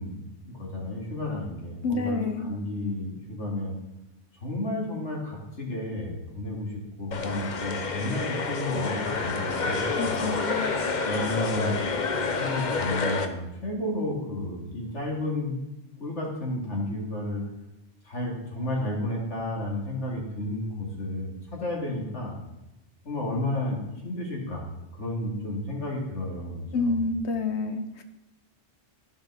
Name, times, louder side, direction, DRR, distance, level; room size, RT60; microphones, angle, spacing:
voice 1, 0.0-3.7 4.4-10.4 11.0-11.8 12.4-15.6 16.0-17.4 18.0-22.4 23.0-24.7 24.9-27.0, left 1 dB, 90° left, -2 dB, 2.8 m, -32 dB
voice 2, 1.8-2.5 10.0-10.7 26.7-27.8, left 3 dB, 75° left, 7 dB, 1.2 m, -28 dB
sound 1, 7.1-13.3, left 4 dB, 45° left, 0.8 m, -28 dB
13.5 x 5.3 x 4.2 m, 0.94 s
omnidirectional pair, 1.2 m